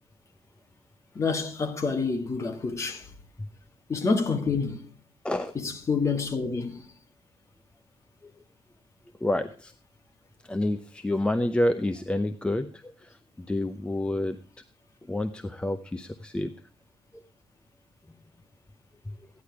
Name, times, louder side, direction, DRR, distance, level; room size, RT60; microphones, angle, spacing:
voice 1, 1.2-3.1 3.9-4.9 5.6-6.9, left 4 dB, 30° left, 1.8 m, -28 dB
voice 2, 9.2-9.7 10.4-14.4 15.1-16.5 19.1-19.2, left 1 dB, 10° left, 0.7 m, -29 dB
15.0 x 10.5 x 4.7 m
cardioid pair, 165°, 10 cm